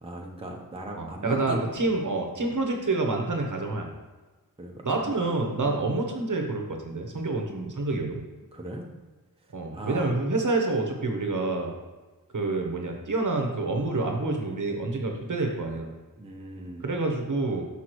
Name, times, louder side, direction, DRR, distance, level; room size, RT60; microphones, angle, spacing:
voice 1, 0.0-2.0 4.6-5.1 5.6-5.9 8.5-8.9 9.7-10.2 16.2-16.9, right 1 dB, 15° right, 0 dB, 0.8 m, -39 dB
voice 2, 1.0-3.9 4.8-8.2 9.5-11.7 12.3-15.9 16.8-17.6, right 2 dB, 55° right, 2 dB, 1.0 m, -28 dB
5.9 x 5.8 x 3.1 m, 1.3 s
wide cardioid pair, 75°, 36 cm